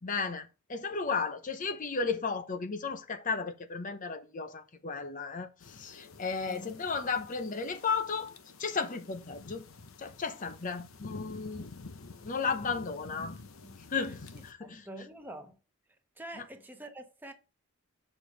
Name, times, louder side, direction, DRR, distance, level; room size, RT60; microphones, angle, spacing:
voice 1, 0.0-8.3 8.6-9.6 10.0-11.7 12.2-13.4 13.9-14.8, left 5 dB, 40° left, 0.7 m, -34 dB
sound 1, 5.6-14.5, left 3 dB, 75° left, 0.9 m, -49 dB
voice 2, 14.3-15.6 16.2-17.3, right 1 dB, 10° right, 1.1 m, -46 dB
6.8 x 5.4 x 3.9 m
head